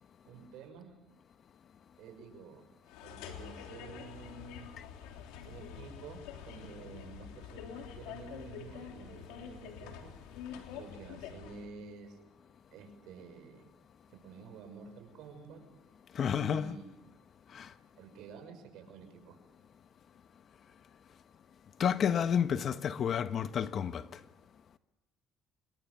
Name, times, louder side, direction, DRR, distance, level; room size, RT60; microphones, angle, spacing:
voice 1, 0.3-1.0 2.0-2.7 3.0-4.7 5.4-10.1 10.7-12.2 12.7-13.7 14.1-15.6 16.4-16.9 18.0-19.4, right 5 dB, 75° right, 6.3 m, -50 dB
sound 1, 2.9-11.7, left 8 dB, 85° left, 3.2 m, -47 dB
voice 2, 16.1-16.7 17.5-17.7 21.8-24.0, left 8 dB, 50° left, 1.3 m, -30 dB
26.0 x 22.0 x 7.0 m
supercardioid pair, 85°, 0 cm